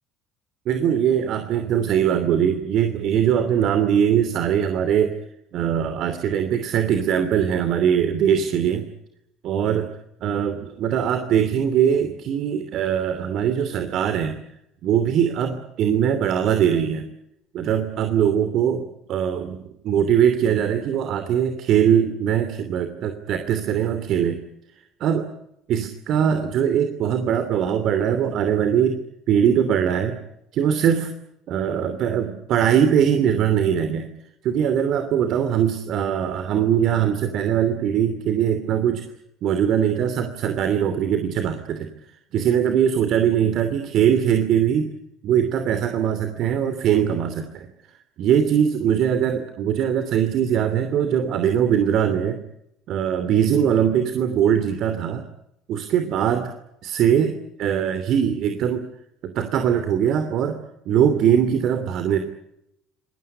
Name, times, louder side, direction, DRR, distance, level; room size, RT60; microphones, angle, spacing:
voice 1, 0.7-5.1 5.5-8.9 9.4-9.9 10.2-14.4 14.8-17.0 17.5-24.4 25.0-25.3 25.7-29.0 29.3-30.2 30.5-31.1 31.5-34.1 34.4-39.1 39.4-41.9 42.3-44.9 45.2-47.7 48.2-52.4 52.9-55.2 55.7-56.5 56.8-58.8 59.2-60.6 60.8-62.2, right 9 dB, 55° right, 8 dB, 2.8 m, -21 dB
27.0 x 20.0 x 9.7 m, 0.82 s
hypercardioid pair, 60°, 0 cm